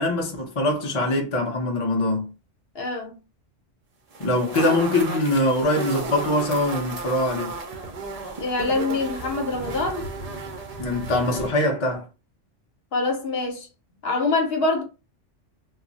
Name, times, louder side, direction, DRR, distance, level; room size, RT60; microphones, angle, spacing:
voice 1, 0.0-2.3 4.2-7.5 10.8-12.0, left 1 dB, 35° left, 0.5 m, -23 dB
voice 2, 2.7-3.2 8.4-10.0 12.9-13.7 14.0-14.8, left 3 dB, 60° left, 0.9 m, -25 dB
sound 1, 4.1-11.5, right 3 dB, 55° right, 0.4 m, -33 dB
2.3 x 2.0 x 3.8 m
omnidirectional pair, 1.3 m